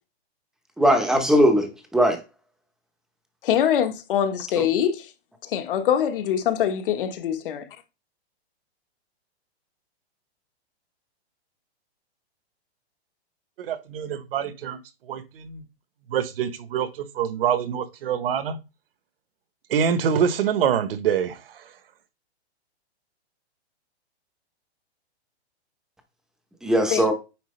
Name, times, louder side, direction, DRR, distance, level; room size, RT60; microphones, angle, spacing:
voice 1, 0.8-2.2 26.6-27.1, equal, ahead, 0.8 m, -19 dB
voice 2, 3.4-5.1 5.4-7.7 26.9-27.1, left 9 dB, 55° left, 1.3 m, -24 dB
voice 3, 13.6-14.8 15.1-15.6 16.1-18.6 19.7-21.7, right 8 dB, 60° right, 1.2 m, -25 dB
9.2 x 4.6 x 3.2 m
hypercardioid pair, 160°, 33 cm